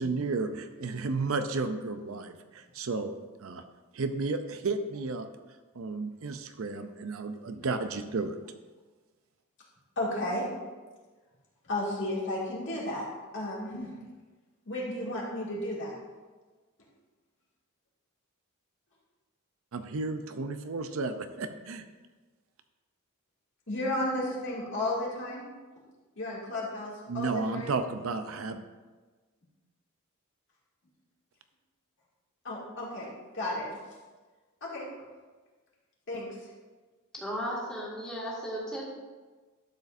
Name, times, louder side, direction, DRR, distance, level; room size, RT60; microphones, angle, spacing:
voice 1, 0.0-3.1 3.4-3.6 3.9-5.3 5.8-8.4 19.7-21.8 27.1-28.6, right 3 dB, 65° right, 9 dB, 0.5 m, -33 dB
voice 2, 10.0-10.4 11.7-13.1 13.3-13.9 14.7-15.9 23.7-25.5 26.2-27.7 32.4-33.1 33.3-33.7 34.6-34.9 36.1-36.3, left 1 dB, 60° left, -5 dB, 2.5 m, -33 dB
voice 3, 37.1-38.8, equal, 5° left, -6 dB, 2.0 m, -35 dB
12.0 x 7.3 x 2.6 m, 1.3 s
head